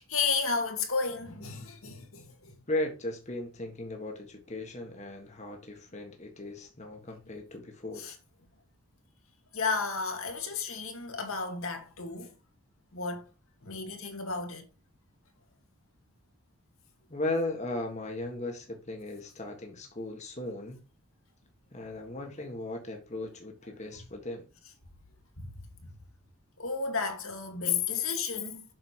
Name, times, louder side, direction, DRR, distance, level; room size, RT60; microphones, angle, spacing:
voice 1, 0.0-2.5 8.0-8.1 9.5-12.3 12.9-13.2 13.6-14.6 25.4-25.5 26.6-28.6, left 5 dB, 70° left, 2.2 m, -32 dB
voice 2, 2.7-8.1 17.1-20.8 21.7-24.5, left 2 dB, 30° left, 1.6 m, -37 dB
7.7 x 6.5 x 4.6 m
head